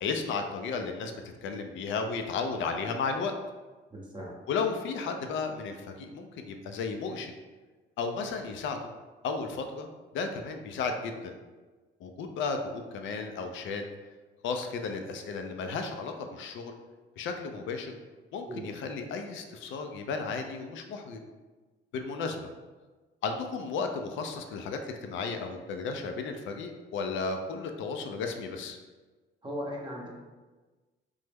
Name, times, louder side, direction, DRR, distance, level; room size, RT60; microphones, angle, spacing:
voice 1, 0.0-3.3 4.5-7.3 8.0-8.8 9.2-9.9 10.1-11.3 12.0-13.8 14.4-16.7 17.2-18.0 18.3-21.2 21.9-22.5 23.2-28.8, left 4 dB, 75° left, 5 dB, 0.4 m, -34 dB
voice 2, 3.9-4.3 18.5-18.7 29.4-30.1, equal, 25° right, -3 dB, 0.7 m, -37 dB
3.3 x 2.0 x 3.3 m, 1.3 s
cardioid pair, 90°, 20 cm